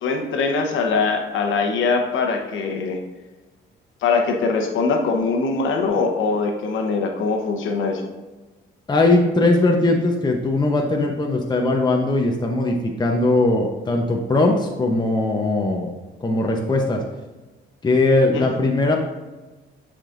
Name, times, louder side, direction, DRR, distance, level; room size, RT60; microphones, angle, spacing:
voice 1, 0.0-3.0 4.0-8.1 18.3-18.5, left 4 dB, 80° left, 3 dB, 1.0 m, -22 dB
voice 2, 8.9-15.9 16.2-17.0 17.8-19.0, left 2 dB, 20° left, 1 dB, 0.8 m, -19 dB
10.5 x 5.1 x 2.6 m, 1.2 s
cardioid pair, 90°, 20 cm